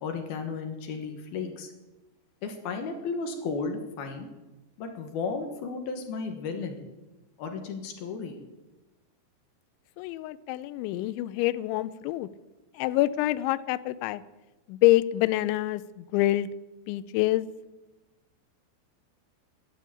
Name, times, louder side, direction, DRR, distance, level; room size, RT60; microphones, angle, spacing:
voice 1, 0.0-1.7 2.4-4.3 4.8-6.8 7.4-8.4, left 4 dB, 65° left, 5 dB, 2.8 m, -34 dB
voice 2, 10.0-12.3 12.7-14.2 14.7-16.5 16.9-17.5, left 16 dB, 80° left, 15 dB, 2.8 m, -26 dB
12.0 x 11.5 x 8.5 m, 1.1 s
omnidirectional pair, 5.5 m